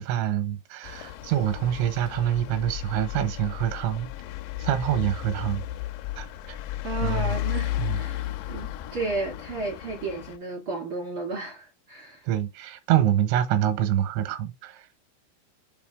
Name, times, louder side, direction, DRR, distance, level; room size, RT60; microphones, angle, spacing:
voice 1, 0.0-4.1 4.6-5.7 6.2-6.3 7.0-7.4 7.8-8.0 12.3-14.8, right 11 dB, 90° right, 3.4 m, -26 dB
sound 1, 0.8-10.4, left 15 dB, 85° left, 2.8 m, -34 dB
voice 2, 6.8-12.2, right 3 dB, 70° right, 1.2 m, -33 dB
7.1 x 3.9 x 3.4 m
omnidirectional pair, 5.3 m